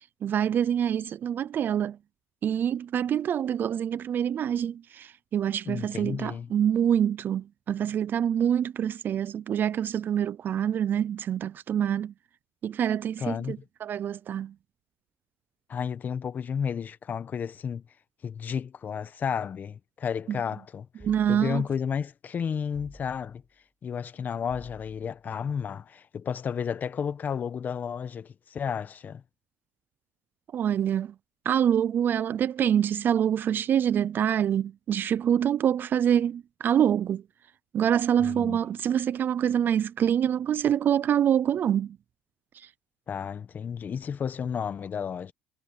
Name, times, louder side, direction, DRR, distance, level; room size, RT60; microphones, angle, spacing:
voice 1, 0.2-2.0 2.4-12.1 12.6-14.5 20.3-20.4 21.0-21.6 30.5-31.1 31.5-37.2 37.7-42.0, right 9 dB, 45° right, 0.5 m, -26 dB
voice 2, 5.6-6.5 13.2-13.6 15.7-17.8 18.2-20.9 21.3-23.4 23.8-29.2 38.2-38.6 43.1-45.3, left 7 dB, 40° left, 1.2 m, -32 dB
sound 1, 21.0-21.7 22.7-23.5 24.5-25.2, left 1 dB, 5° left, 6.5 m, -51 dB
supercardioid pair, 95°, 5 cm